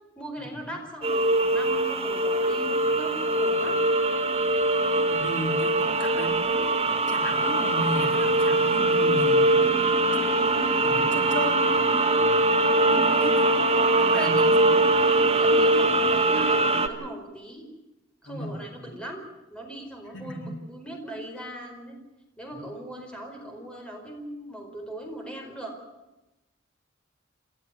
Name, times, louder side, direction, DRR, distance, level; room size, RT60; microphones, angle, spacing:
voice 1, 0.1-3.8 14.1-14.6 15.4-17.7 18.2-19.2 19.5-22.0 22.4-25.7, right 1 dB, 5° left, 1 dB, 4.6 m, -39 dB
sound 1, 1.0-16.9, right 2 dB, 30° right, 1.7 m, -22 dB
voice 2, 5.0-6.8 7.1-9.7 10.4-12.1 12.8-14.7 18.2-18.8 20.1-20.7 22.6-22.7, left 1 dB, 65° left, 1 dB, 4.1 m, -35 dB
29.0 x 12.5 x 9.6 m, 0.98 s
head